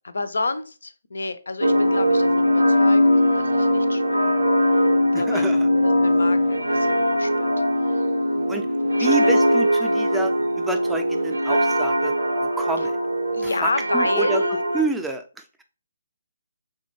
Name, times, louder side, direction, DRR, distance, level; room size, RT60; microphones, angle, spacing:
voice 1, 0.0-3.0 3.3-4.8 5.1-8.0 8.3-9.3 13.3-14.8, left 3 dB, 75° left, 12 dB, 0.4 m, -31 dB
sound 1, 1.6-14.8, equal, 90° right, 0.6 m, -20 dB
voice 2, 5.1-5.7 8.5-8.7 9.0-12.1 12.6-13.0 13.4-14.4 14.7-15.6, right 2 dB, 5° right, 5 dB, 0.4 m, -29 dB
3.4 x 2.2 x 3.1 m, 0.34 s
figure-of-eight pair, 140°, 0 cm